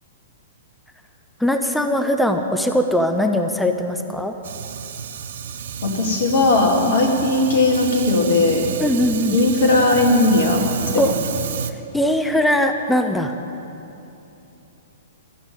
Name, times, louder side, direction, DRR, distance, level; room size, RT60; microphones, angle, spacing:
voice 1, 1.4-4.3 6.9-7.0 8.8-9.4 11.0-11.1 11.9-13.3, left 1 dB, 5° left, 5 dB, 0.7 m, -20 dB
Fire, 4.4-11.7, right 7 dB, 55° right, 0.7 m, -31 dB
voice 2, 5.8-8.7 9.3-10.6 10.9-11.2, left 2 dB, 55° left, 1 dB, 2.6 m, -17 dB
14.5 x 7.2 x 9.8 m, 2.9 s
figure-of-eight pair, 110°, 0 cm